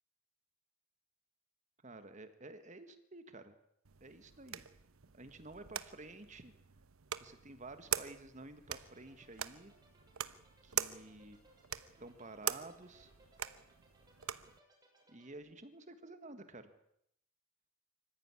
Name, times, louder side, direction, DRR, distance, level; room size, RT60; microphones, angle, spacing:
voice 1, 1.8-3.6 4.0-4.6 5.1-6.5 7.2-9.7 10.6-11.4 12.0-13.1 15.1-16.7, right 2 dB, 35° right, 10 dB, 1.6 m, -51 dB
sound 1, 3.8-14.6, right 10 dB, 80° right, 1.0 m, -44 dB
sound 2, 8.8-15.3, right 2 dB, 20° right, 6.7 m, -67 dB
25.0 x 14.5 x 9.8 m, 0.74 s
head